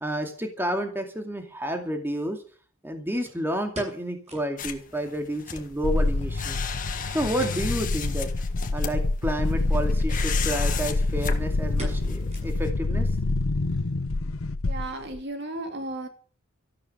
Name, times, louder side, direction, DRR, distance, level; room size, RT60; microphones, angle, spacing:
voice 1, 0.0-2.4 2.8-6.6 7.1-8.3 8.7-13.1, equal, 10° right, 4 dB, 2.3 m, -30 dB
sound 1, 1.2-1.3 3.3-4.6 4.9-5.0 5.3-5.4 6.0-6.9 7.3-7.7 8.0-8.3 8.8-8.9 9.8-10.1 10.5-10.6 10.9-11.2 11.8-12.8 13.1-13.2 13.8-14.2 14.4-14.5, right 2 dB, 30° right, 6.8 m, -42 dB
sound 2, 4.6-12.7, left 7 dB, 40° left, 1.7 m, -36 dB
sound 3, 5.8-15.2, left 2 dB, 80° left, 0.9 m, -26 dB
voice 2, 14.6-16.1, right 2 dB, 50° right, 6 dB, 2.7 m, -34 dB
13.5 x 12.5 x 6.7 m, 0.41 s
head